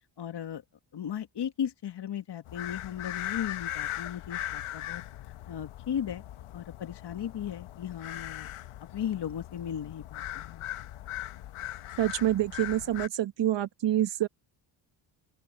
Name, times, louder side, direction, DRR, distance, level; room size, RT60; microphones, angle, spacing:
voice 1, 0.2-0.6 0.9-5.0 5.5-6.2 6.5-8.5 8.9-10.6, left 9 dB, 55° left, 1.5 m, -36 dB
sound 1, 2.5-13.1, left 13 dB, 80° left, 1.2 m, -39 dB
voice 2, 12.0-14.3, right 12 dB, 60° right, 1.2 m, -27 dB
open air
cardioid pair, 75°, 49 cm